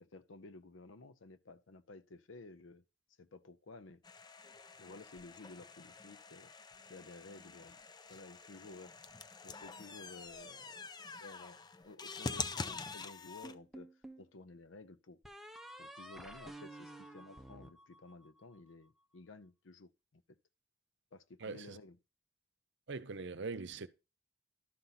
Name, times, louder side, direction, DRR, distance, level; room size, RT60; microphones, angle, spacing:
voice 1, 0.0-2.8 3.2-4.0 4.8-6.5 6.9-7.8 8.1-9.0 9.4-10.9 11.2-15.2 15.8-20.4 21.1-22.0, left 3 dB, 75° left, 0.7 m, -54 dB
sound 1, 4.0-13.5, left 4 dB, 20° left, 0.4 m, -46 dB
sound 2, 13.4-14.3 15.2-18.6, right 1 dB, ahead, 0.8 m, -51 dB
voice 2, 21.4-21.8 22.9-23.9, right 4 dB, 65° right, 0.7 m, -42 dB
12.0 x 4.0 x 5.7 m
head